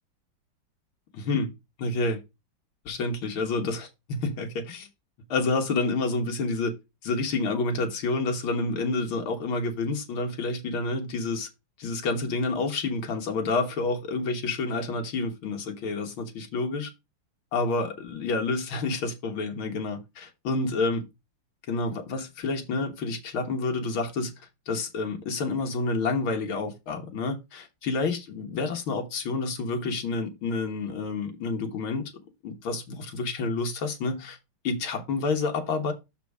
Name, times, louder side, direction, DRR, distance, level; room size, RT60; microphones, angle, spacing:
voice 1, 1.1-1.5 1.8-2.2 2.9-4.9 5.3-6.7 7.0-11.5 11.8-16.9 17.5-21.0 21.7-24.3 24.7-32.0 32.4-34.4 34.6-35.9, left 3 dB, 65° left, 2.2 m, -29 dB
6.5 x 5.0 x 4.7 m
omnidirectional pair, 2.4 m